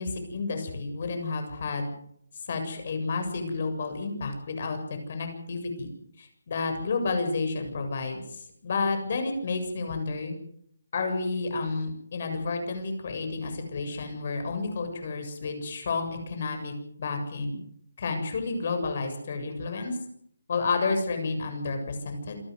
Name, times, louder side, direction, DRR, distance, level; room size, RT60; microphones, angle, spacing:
voice 1, 0.0-1.9 2.5-4.8 5.1-5.9 6.2-10.4 10.9-16.7 17.0-17.6 18.0-20.0 20.5-22.4, left 3 dB, 45° left, 6 dB, 7.5 m, -30 dB
27.5 x 14.0 x 8.3 m, 0.69 s
hypercardioid pair, 165°, 0 cm